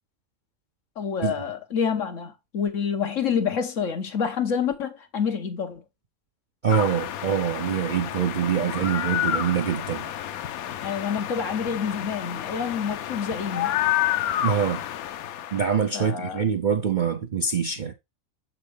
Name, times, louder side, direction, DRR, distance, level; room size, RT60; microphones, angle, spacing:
voice 1, 1.0-5.8 10.8-13.9 15.9-16.4, left 7 dB, 65° left, 1.5 m, -28 dB
voice 2, 6.6-10.1 14.4-14.8 15.5-17.9, right 7 dB, 50° right, 0.5 m, -25 dB
sound 1, 6.7-15.8, left 12 dB, 85° left, 1.1 m, -30 dB
7.5 x 5.8 x 3.3 m
omnidirectional pair, 1.5 m